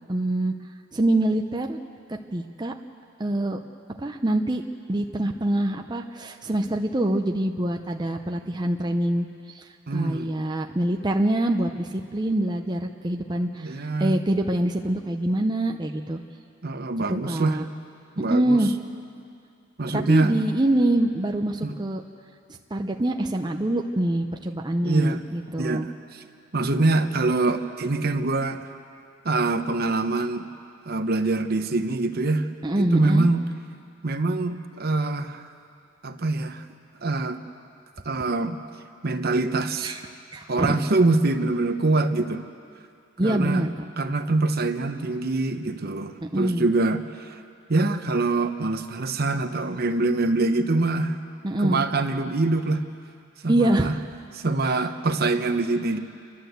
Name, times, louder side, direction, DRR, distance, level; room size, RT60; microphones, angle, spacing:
voice 1, 0.1-0.5 0.9-1.8 2.1-2.7 3.2-3.6 4.0-4.6 4.9-16.2 17.1-17.6 18.3-18.7 19.9-22.0 22.7-25.9 32.6-33.3 39.8-40.0 40.3-40.8 43.2-43.7 46.3-46.7 51.4-51.9 53.5-54.0 54.6-54.8, right 1 dB, 20° right, 3 dB, 0.6 m, -25 dB
voice 2, 9.9-10.3 13.6-14.2 16.6-17.6 18.2-18.6 19.8-20.3 21.6-21.7 24.8-25.2 25.6-26.2 26.5-28.7 29.2-30.5 30.9-32.5 32.8-33.4 34.0-35.5 36.0-36.6 37.0-37.4 38.0-38.6 39.0-39.9 40.5-42.4 43.2-43.7 44.0-47.4 47.7-51.2 51.6-52.8 53.4-53.9 54.3-56.0, right 2 dB, 50° right, 8 dB, 0.9 m, -24 dB
29.5 x 11.5 x 8.0 m, 2.4 s
head